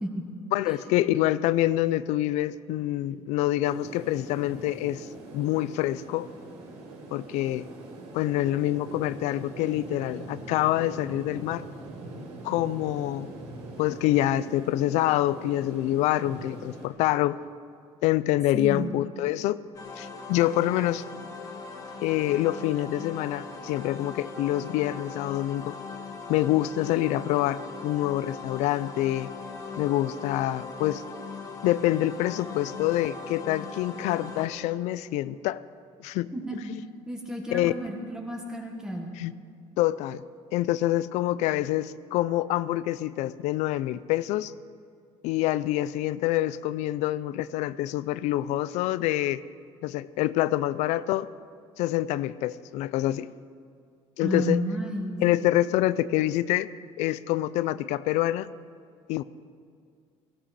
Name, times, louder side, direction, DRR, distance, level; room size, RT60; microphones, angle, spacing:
voice 1, 0.5-5.1 5.3-6.3 7.1-7.7 8.1-11.6 12.4-13.3 13.8-17.4 18.0-19.6 20.0-21.0 22.0-25.8 26.3-29.3 29.8-31.0 31.6-35.6 36.0-36.3 36.7-36.8 37.5-37.7 39.2-39.3 39.8-40.2 40.5-44.5 45.2-49.4 49.8-51.3 51.8-53.3 54.2-54.6 55.2-56.7 57.0-58.5 59.1-59.2, left 15 dB, 80° left, 17 dB, 0.4 m, -26 dB
sound 1, 3.6-16.9, right 2 dB, 65° right, 4.4 m, -42 dB
voice 2, 18.5-19.0 36.3-36.6 37.0-39.2 54.2-55.2, equal, 5° right, 0 dB, 1.4 m, -32 dB
sound 2, 19.7-34.5, left 4 dB, 30° left, 1.5 m, -40 dB
18.0 x 16.0 x 4.2 m, 2.3 s
cardioid pair, 170°, 12 cm